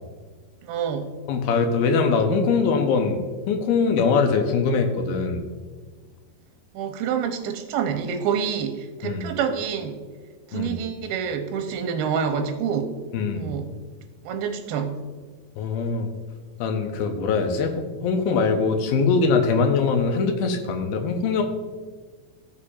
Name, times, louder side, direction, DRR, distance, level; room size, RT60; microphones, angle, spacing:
voice 1, 0.6-1.1 6.7-10.1 10.5-12.9 13.3-13.7 14.3-15.0, right 7 dB, 85° right, 5 dB, 2.6 m, -27 dB
voice 2, 1.3-5.5 9.0-9.2 10.5-10.7 13.1-13.5 15.6-16.1 16.6-21.4, left 4 dB, 80° left, 4 dB, 2.6 m, -22 dB
15.0 x 7.0 x 2.5 m, 1.4 s
omnidirectional pair, 4.4 m